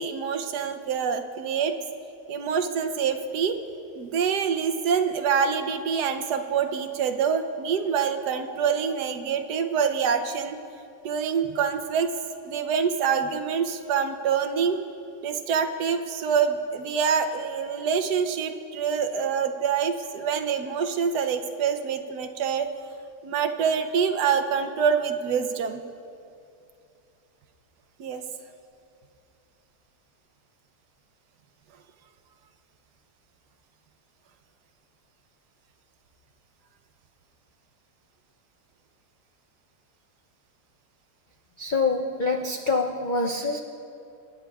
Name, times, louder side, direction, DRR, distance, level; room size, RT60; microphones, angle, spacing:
voice 1, 0.0-1.7 2.3-3.6 3.9-10.6 11.0-12.1 12.4-14.8 15.2-22.7 23.2-25.8 28.0-28.2, right 6 dB, 80° right, 7 dB, 1.3 m, -26 dB
voice 2, 41.6-43.6, left 3 dB, 65° left, 1 dB, 0.4 m, -25 dB
26.0 x 10.5 x 2.3 m, 2.6 s
omnidirectional pair, 1.8 m